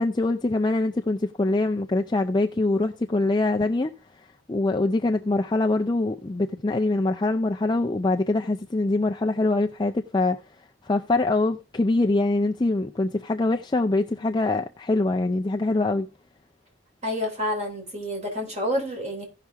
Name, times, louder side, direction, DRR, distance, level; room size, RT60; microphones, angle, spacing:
voice 1, 0.0-3.9 4.5-10.4 10.8-16.1, left 2 dB, 20° left, 0.4 m, -24 dB
voice 2, 17.0-19.3, left 1 dB, 30° right, 3.4 m, -28 dB
16.5 x 5.9 x 3.4 m
head